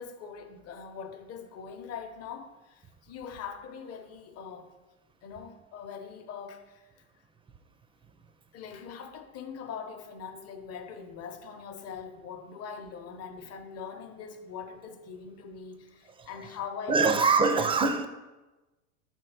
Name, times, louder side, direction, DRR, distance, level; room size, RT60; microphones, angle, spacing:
voice 1, 0.0-4.7 5.2-7.0 8.5-17.3, left 6 dB, 40° left, 0.9 m, -42 dB
voice 2, 16.9-18.1, right 4 dB, 15° right, 0.5 m, -23 dB
5.8 x 4.5 x 5.0 m
supercardioid pair, 100°, 40 cm